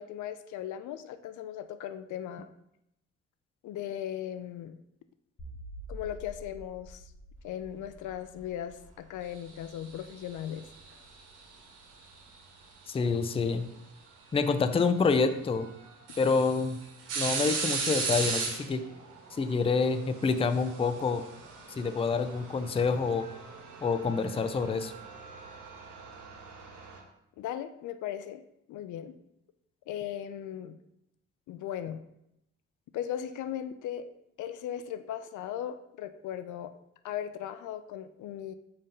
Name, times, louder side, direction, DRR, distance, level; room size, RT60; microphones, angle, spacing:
voice 1, 0.0-2.5 3.6-4.8 5.9-7.1 7.4-10.7 27.4-28.4 28.7-29.2 29.9-30.8 31.5-32.0 32.9-36.7 37.0-38.5, left 10 dB, 75° left, 10 dB, 0.5 m, -38 dB
sound 1, 5.4-12.6, equal, 35° left, 1.3 m, -49 dB
sound 2, 9.7-11.2 13.0-13.1 14.7-14.8 15.3-15.4 15.8-27.0, right 4 dB, 90° right, 1.2 m, -37 dB
voice 2, 12.9-13.7 14.3-15.7 16.2-16.8 17.2-18.9 19.4-21.3 21.8-23.3 23.8-24.9, left 4 dB, 20° left, 10 dB, 0.4 m, -27 dB
5.5 x 3.4 x 5.3 m, 0.82 s
cardioid pair, 90°, 30 cm